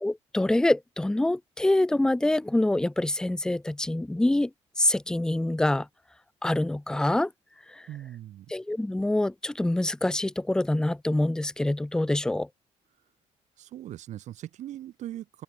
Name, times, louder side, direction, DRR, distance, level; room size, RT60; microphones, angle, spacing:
voice 1, 0.0-4.5 4.8-5.9 6.4-7.3 7.7-7.8 8.5-12.5, left 1 dB, 5° left, 0.5 m, -25 dB
voice 2, 7.9-8.5 13.6-15.4, right 12 dB, 80° right, 5.0 m, -40 dB
open air
cardioid pair, 120°, 12 cm